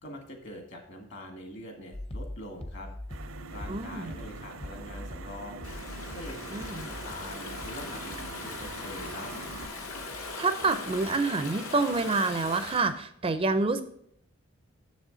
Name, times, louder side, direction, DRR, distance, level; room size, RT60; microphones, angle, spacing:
voice 1, 0.0-2.9 3.5-5.7 6.1-9.3, left 1 dB, 55° left, 3 dB, 1.7 m, -44 dB
sound 1, 1.9-10.3 10.6-11.2, left 1 dB, 25° left, 0.6 m, -43 dB
sound 2, 3.1-9.7, right 3 dB, 70° right, 0.6 m, -44 dB
voice 2, 3.7-4.1 6.5-6.9 10.2-13.8, right 3 dB, 25° right, 10 dB, 0.4 m, -28 dB
Stream / Ocean, 5.6-12.9, left 3 dB, 85° left, 1.5 m, -40 dB
7.3 x 7.3 x 3.8 m, 0.69 s
head